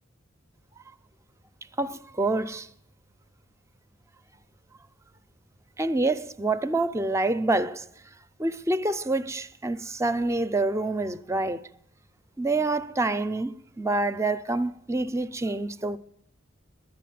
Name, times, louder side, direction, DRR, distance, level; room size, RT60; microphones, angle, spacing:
voice 1, 1.8-2.7 5.8-7.9 8.4-11.6 12.4-16.0, right 2 dB, 15° right, 0.4 m, -27 dB
10.5 x 10.0 x 9.3 m
head